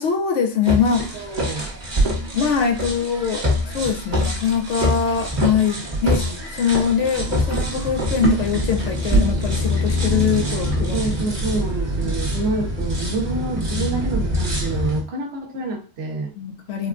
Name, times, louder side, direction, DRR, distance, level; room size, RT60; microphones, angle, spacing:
voice 1, 0.0-1.2 2.3-6.2 6.5-11.6 16.4-16.9, left 7 dB, 70° left, 4 dB, 0.9 m, -23 dB
sound 1, 0.6-15.0, equal, 35° right, 1.0 m, -24 dB
voice 2, 1.1-1.7 6.0-6.4 10.9-16.3, right 2 dB, 60° right, 2 dB, 0.9 m, -27 dB
4.0 x 2.2 x 2.5 m, 0.36 s
omnidirectional pair, 1.4 m